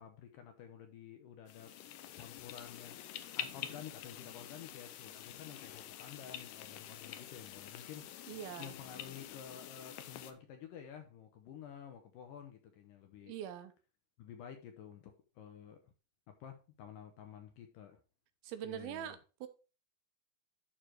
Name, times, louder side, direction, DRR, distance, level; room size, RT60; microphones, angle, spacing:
voice 1, 0.0-1.7 2.1-3.0 3.3-13.3 14.2-15.8 16.3-18.0 18.6-19.2, left 8 dB, 75° left, 6 dB, 2.2 m, -51 dB
sound 1, 1.5-10.3, left 11 dB, 90° left, 1.8 m, -47 dB
voice 2, 8.3-8.7 13.2-13.7 18.4-19.5, right 10 dB, 80° right, 9 dB, 2.6 m, -43 dB
11.5 x 3.9 x 4.5 m, 0.33 s
omnidirectional pair, 4.6 m